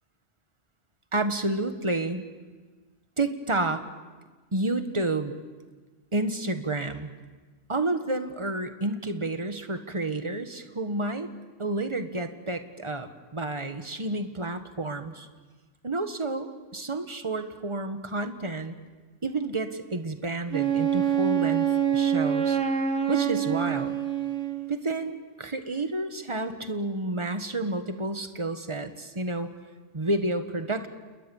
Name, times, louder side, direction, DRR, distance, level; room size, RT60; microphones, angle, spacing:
voice 1, 1.1-2.2 3.2-3.8 4.5-5.4 6.1-7.1 7.7-11.3 11.6-15.3 15.8-18.7 19.2-22.6 23.1-24.0 24.7-29.5 29.9-30.9, right 2 dB, 25° right, 7 dB, 1.6 m, -30 dB
Wind instrument woodwind instrument, 20.5-24.9, right 8 dB, 85° right, 1.5 m, -26 dB
28.5 x 21.0 x 7.2 m, 1.3 s
omnidirectional pair, 1.2 m